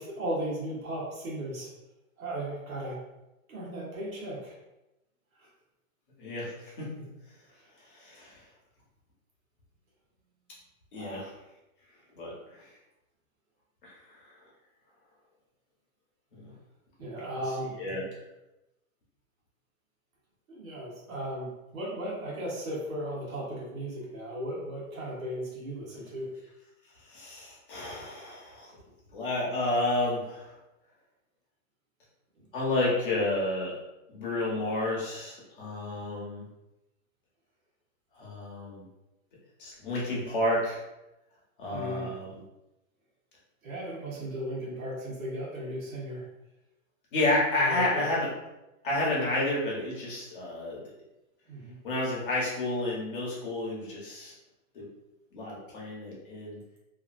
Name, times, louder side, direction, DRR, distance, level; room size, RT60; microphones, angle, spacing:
voice 1, 0.0-1.7 2.2-3.0 3.5-4.5 5.4-5.5 10.9-11.2 17.0-17.8 20.5-26.3 32.4-32.5 41.7-42.1 43.6-46.3 47.6-48.1 51.5-51.8, right 1 dB, 75° right, -5 dB, 1.3 m, -36 dB
voice 2, 6.2-6.9 7.8-8.4 10.9-11.3 12.1-12.7 13.8-14.3 16.4-16.5 17.8-18.0 27.0-28.7 29.1-30.5 32.5-33.7 34.1-36.4 38.1-38.9 39.6-40.8 41.6-42.3 47.1-48.3 48.8-50.8 51.8-54.3 54.7-54.9 55.3-56.6, left 2 dB, 40° left, -5 dB, 1.0 m, -31 dB
2.9 x 2.5 x 2.5 m, 0.95 s
hypercardioid pair, 180°, 42 cm